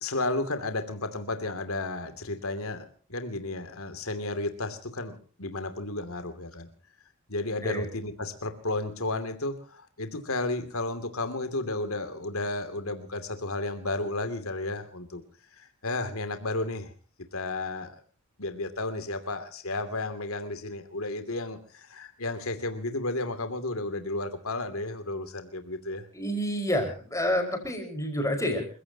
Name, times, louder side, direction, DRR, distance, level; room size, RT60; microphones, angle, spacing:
voice 1, 0.0-6.7 7.3-15.2 15.6-16.9 17.3-18.0 18.4-26.1, left 2 dB, 75° left, 9 dB, 2.8 m, -33 dB
voice 2, 26.1-28.8, left 1 dB, 15° left, 5 dB, 5.2 m, -29 dB
29.0 x 16.5 x 2.9 m, 0.39 s
head